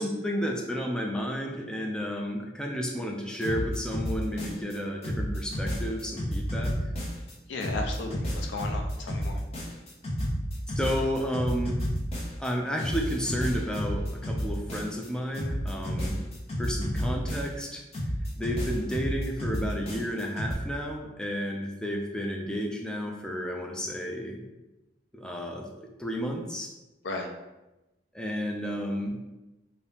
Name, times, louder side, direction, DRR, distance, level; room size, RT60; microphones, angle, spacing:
voice 1, 0.0-6.7 10.8-11.8 12.4-16.2 16.6-17.8 18.4-24.5 25.1-26.7 28.1-29.2, equal, 5° left, 0 dB, 0.3 m, -32 dB
sound 1, 3.4-4.8 5.0-7.3 7.6-12.5 12.8-15.1 15.3-17.7 17.9-20.5, equal, 35° left, 0.6 m, -31 dB
voice 2, 7.5-9.4 27.0-27.3, left 2 dB, 75° left, 2 dB, 0.4 m, -35 dB
2.8 x 2.7 x 3.3 m, 1.0 s
head